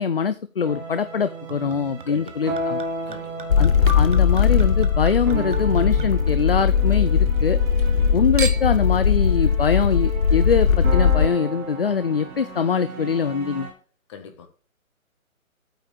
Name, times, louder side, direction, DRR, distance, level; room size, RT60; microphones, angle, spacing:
voice 1, 0.0-2.8 3.6-7.6 8.1-13.7, left 6 dB, 45° left, 0.5 m, -23 dB
sound 1, 0.6-13.7, right 3 dB, 15° right, 1.7 m, -34 dB
Chink clink / Liquid, 1.5-7.0 7.3-8.0 8.4-8.9 9.6-9.7, right 5 dB, 40° right, 1.0 m, -38 dB
voice 2, 2.1-2.5 3.0-3.6 7.8-8.1 14.1-14.5, left 6 dB, 20° left, 1.5 m, -42 dB
sound 2, 3.5-11.3, left 7 dB, 75° left, 0.8 m, -19 dB
9.0 x 4.8 x 7.6 m
figure-of-eight pair, 140°, 42 cm